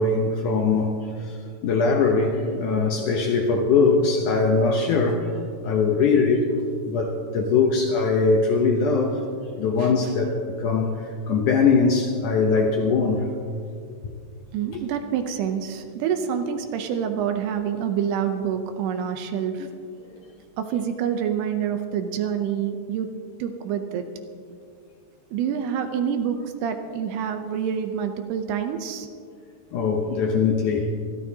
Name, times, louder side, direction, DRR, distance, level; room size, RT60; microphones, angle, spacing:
voice 1, 0.0-5.3 5.6-6.5 6.9-13.3 14.7-14.8 19.6-19.7 20.1-20.2 29.7-30.9, left 4 dB, 75° left, 2 dB, 1.8 m, -21 dB
voice 2, 14.5-19.7 20.6-23.1 23.4-24.1 25.3-29.1, right 8 dB, 80° right, 7 dB, 2.8 m, -27 dB
26.5 x 14.0 x 2.8 m, 2.3 s
omnidirectional pair, 4.7 m